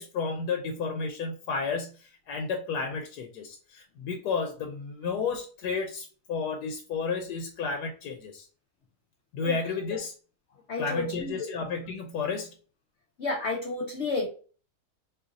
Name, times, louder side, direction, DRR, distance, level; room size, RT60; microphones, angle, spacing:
voice 1, 0.0-8.5 9.3-10.1 10.8-12.5, left 5 dB, 85° left, 3 dB, 1.2 m, -32 dB
voice 2, 10.7-11.5 13.2-14.3, left 3 dB, 60° left, 1 dB, 0.8 m, -31 dB
2.9 x 2.5 x 3.8 m, 0.39 s
omnidirectional pair, 1.7 m